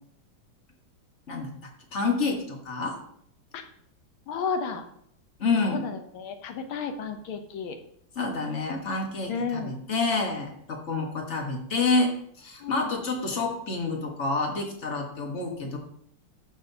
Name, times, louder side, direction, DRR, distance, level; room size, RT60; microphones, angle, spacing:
voice 1, 1.9-2.9 5.4-5.8 8.2-12.1 12.4-15.8, left 3 dB, 40° left, 2 dB, 1.5 m, -28 dB
voice 2, 4.3-4.9 5.6-7.8 9.3-9.7 12.6-12.9, left 5 dB, 80° left, 7 dB, 1.7 m, -32 dB
12.5 x 6.0 x 2.8 m, 0.69 s
omnidirectional pair, 2.2 m